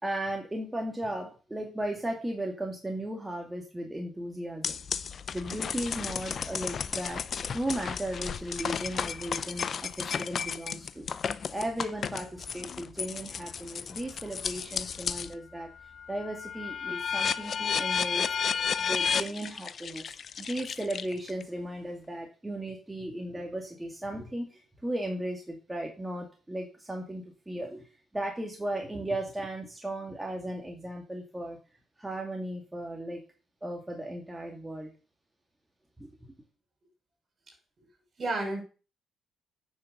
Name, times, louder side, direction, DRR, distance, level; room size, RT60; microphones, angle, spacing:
voice 1, 0.0-4.8 5.3-11.0 11.5-18.3 18.8-31.6 32.0-33.2 33.6-34.9 36.0-36.3, right 1 dB, 10° right, 1 dB, 2.4 m, -36 dB
sound 1, 4.6-15.3 15.8-21.4, left 7 dB, 50° left, 0.7 m, -33 dB
voice 2, 37.5-37.9 38.2-38.6, right 2 dB, 45° right, 3 dB, 6.1 m, -33 dB
9.6 x 6.6 x 6.7 m, 0.35 s
cardioid pair, 90°, 0 cm